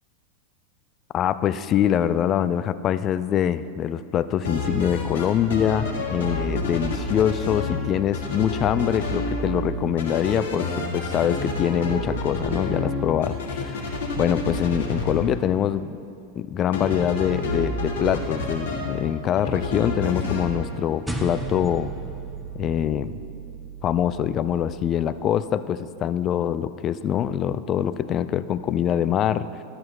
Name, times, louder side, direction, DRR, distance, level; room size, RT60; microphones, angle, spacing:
voice 1, 1.1-16.0 16.4-21.9 22.5-23.2 23.8-29.6, left 9 dB, 30° left, 14 dB, 0.3 m, -24 dB
sound 1, 4.3-5.2 5.5-7.8 8.1-9.7 10.0-15.1 16.7-19.0 19.4-20.5, left 3 dB, 60° left, 1.5 m, -28 dB
sound 2, 21.1-25.7, right 3 dB, 5° right, 0.9 m, -36 dB
12.5 x 8.5 x 4.3 m, 2.6 s
figure-of-eight pair, 90°, 0 cm